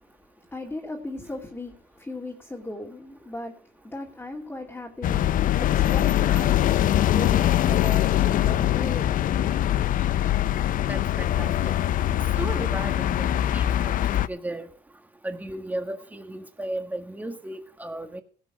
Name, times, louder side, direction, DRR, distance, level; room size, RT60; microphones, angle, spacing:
voice 1, 0.0-9.9, left 2 dB, 10° left, 2.4 m, -38 dB
sound 1, 5.0-14.3, left 12 dB, 55° left, 0.5 m, -23 dB
voice 2, 10.9-11.8 12.4-14.0 14.3-14.7 15.2-18.2, right 1 dB, 10° right, 1.7 m, -35 dB
17.0 x 6.1 x 6.4 m
cardioid pair, 110°, 17 cm